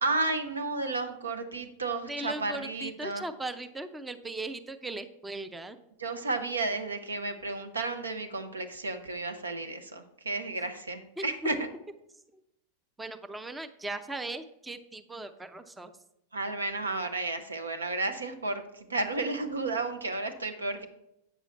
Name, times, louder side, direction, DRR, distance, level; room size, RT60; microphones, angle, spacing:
voice 1, 0.0-3.2 6.0-11.7 16.3-20.8, right 3 dB, 75° right, 8 dB, 0.9 m, -32 dB
voice 2, 2.1-5.8 11.2-11.5 12.3-12.4 13.0-15.9, right 2 dB, 10° right, 10 dB, 0.5 m, -38 dB
8.6 x 7.0 x 4.3 m, 0.85 s
figure-of-eight pair, 90°, 0 cm